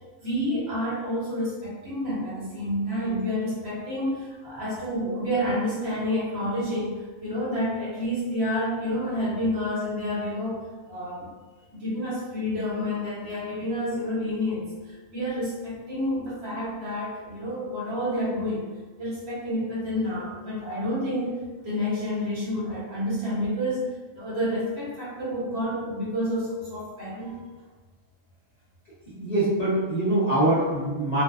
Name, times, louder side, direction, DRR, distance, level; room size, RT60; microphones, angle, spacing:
voice 1, 0.2-10.6 10.9-11.3 11.7-18.7 19.0-21.4 21.6-23.9 24.1-27.4, left 1 dB, 55° right, -8 dB, 1.0 m, -29 dB
voice 2, 29.1-31.2, right 1 dB, 40° left, -12 dB, 0.7 m, -24 dB
2.6 x 2.2 x 2.3 m, 1.3 s
omnidirectional pair, 1.4 m